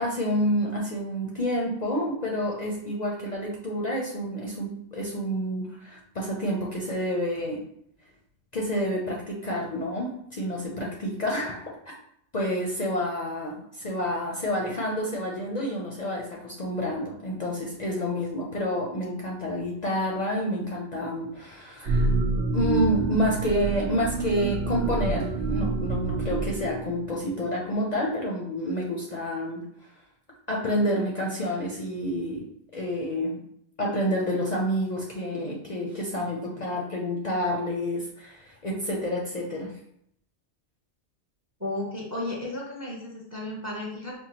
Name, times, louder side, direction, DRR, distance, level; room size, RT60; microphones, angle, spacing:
voice 1, 0.0-7.6 8.5-11.9 12.3-22.1 22.5-29.9 30.5-32.4 32.7-33.4 33.8-39.7, equal, 50° left, -2 dB, 0.6 m, -29 dB
sound 1, 21.9-27.2, right 3 dB, 70° right, 0.8 m, -27 dB
voice 2, 41.6-44.1, left 1 dB, 20° right, -2 dB, 0.6 m, -33 dB
5.3 x 2.2 x 2.8 m, 0.70 s
omnidirectional pair, 1.2 m